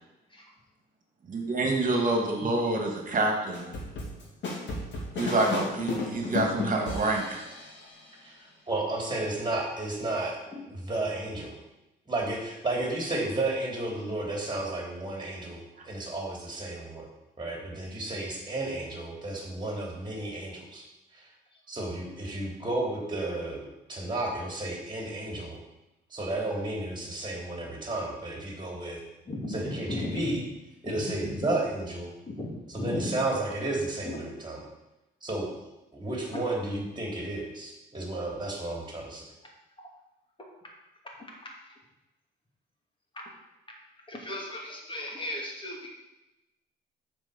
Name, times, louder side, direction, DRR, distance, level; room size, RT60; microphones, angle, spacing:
voice 1, 1.3-3.7 5.2-7.4, right 2 dB, 45° right, 2 dB, 2.1 m, -27 dB
voice 2, 1.8-2.1 10.5-10.6 21.5-21.6 29.3-30.4 30.9-31.5 32.3-33.2 34.0-34.2 36.3-36.4 41.4-41.8 43.1-43.2 44.1-45.9, left 1 dB, 25° left, -1 dB, 2.6 m, -36 dB
sound 1, 3.5-7.8, left 3 dB, 65° left, 2.6 m, -33 dB
voice 3, 8.7-10.4 10.9-11.6 12.1-17.1 17.4-20.8 21.1-21.3 21.7-25.6 26.1-29.0 29.5-30.4 30.8-32.1 32.7-34.2 34.4-34.6 35.2-35.5 35.9-39.2, right 2 dB, 25° right, -1 dB, 3.2 m, -32 dB
7.3 x 4.9 x 7.1 m, 0.97 s
cardioid pair, 90°, 20 cm